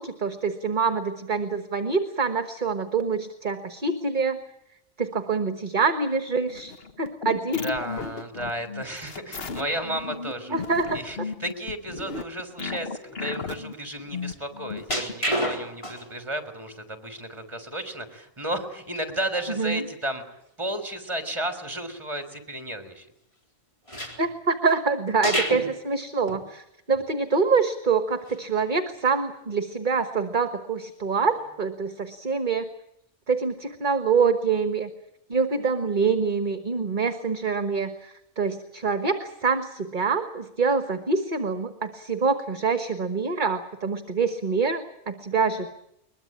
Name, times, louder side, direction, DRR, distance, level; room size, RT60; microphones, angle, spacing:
voice 1, 0.0-4.4 5.0-7.8 10.5-11.0 19.6-19.8 24.2-32.7 33.3-34.9 35.3-45.7, right 4 dB, 40° right, 9 dB, 1.5 m, -25 dB
sound 1, 6.5-15.1, left 4 dB, 55° left, 1.6 m, -36 dB
voice 2, 7.6-10.6 10.9-23.1, right 1 dB, 25° right, 9 dB, 3.6 m, -33 dB
sound 2, 14.9-16.2 16.7-16.8 19.0-19.1 19.4-19.5 19.9-20.0 23.9-24.8 25.2-25.8 26.3-26.4 26.9-27.0 28.3-28.4 28.8-29.1 31.3-31.5, equal, 25° left, 3.9 m, -29 dB
22.0 x 22.0 x 8.8 m, 0.80 s
omnidirectional pair, 1.2 m